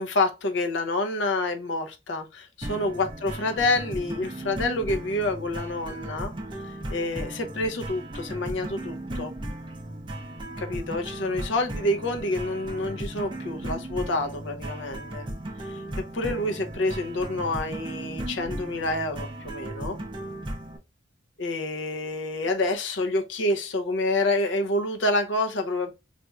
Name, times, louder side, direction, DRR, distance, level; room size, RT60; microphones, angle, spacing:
voice 1, 0.0-6.3 6.6-9.3 10.6-15.3 15.7-15.8 16.1-20.0 21.4-25.9, left 2 dB, 75° left, 0.6 m, -28 dB
sound 1, 2.6-20.8, right 1 dB, 25° right, 0.5 m, -36 dB
4.0 x 2.5 x 2.3 m
head